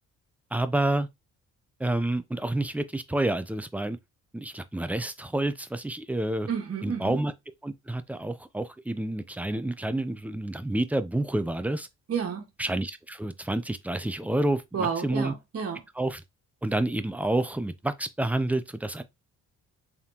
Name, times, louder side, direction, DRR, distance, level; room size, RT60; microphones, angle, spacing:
voice 1, 0.5-1.1 1.8-4.0 4.3-6.5 6.8-7.3 7.6-11.9 12.6-15.3 16.0-16.2 16.6-19.0, right 1 dB, 5° right, 0.5 m, -29 dB
voice 2, 6.5-7.2 12.1-12.5 14.7-15.8, right 6 dB, 50° right, 1.5 m, -30 dB
3.6 x 3.5 x 2.8 m
cardioid pair, 90°, 30 cm